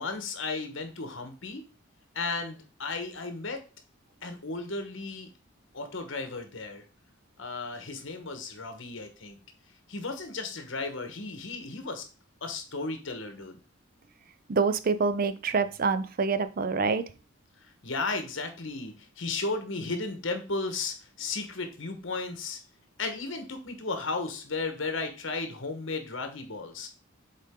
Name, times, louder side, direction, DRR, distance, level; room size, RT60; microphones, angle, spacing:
voice 1, 0.0-1.6 2.1-3.6 4.2-5.3 5.7-6.8 7.4-9.4 9.9-12.0 12.4-13.6 17.8-22.6 23.0-26.9, left 3 dB, 65° left, 6 dB, 1.2 m, -34 dB
voice 2, 14.5-17.0, right 4 dB, 45° right, 12 dB, 0.5 m, -26 dB
7.3 x 4.1 x 3.7 m, 0.35 s
head